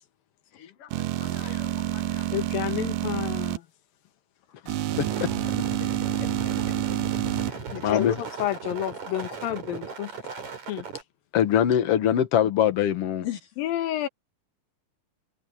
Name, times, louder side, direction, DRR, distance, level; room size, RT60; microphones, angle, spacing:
sound 1, 0.9-3.6 4.7-7.5, right 14 dB, 80° right, 2.4 m, -28 dB
voice 1, 1.2-2.3 5.0-5.3 7.8-8.2 11.3-13.3, left 10 dB, 55° left, 1.9 m, -24 dB
voice 2, 2.3-3.7 7.7-10.1 10.7-10.9 13.6-14.1, left 12 dB, 90° left, 3.2 m, -30 dB
sound 2, 4.9-11.0, right 4 dB, 55° right, 5.5 m, -37 dB
voice 3, 5.6-7.0 7.4-7.8 13.2-13.5, left 11 dB, 70° left, 4.0 m, -40 dB
omnidirectional pair, 4.0 m